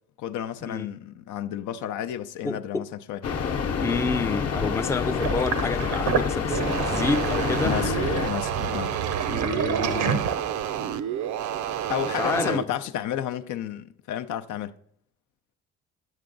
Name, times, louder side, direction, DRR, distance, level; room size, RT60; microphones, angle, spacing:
voice 1, 0.2-3.2 7.6-7.9 8.2-9.0 11.9-14.7, left 10 dB, 75° left, 0.5 m, -31 dB
voice 2, 2.4-2.9 3.8-7.8 9.3-10.2 10.8-10.9 12.1-12.6, left 3 dB, 10° left, 0.4 m, -29 dB
sound 1, 3.2-8.3, left 6 dB, 55° left, 0.8 m, -27 dB
Sink (filling or washing), 5.2-10.8, right 7 dB, 90° right, 0.9 m, -29 dB
sound 2, 6.5-12.6, right 9 dB, 70° right, 0.5 m, -30 dB
9.5 x 8.0 x 3.8 m
cardioid pair, 90°, 30 cm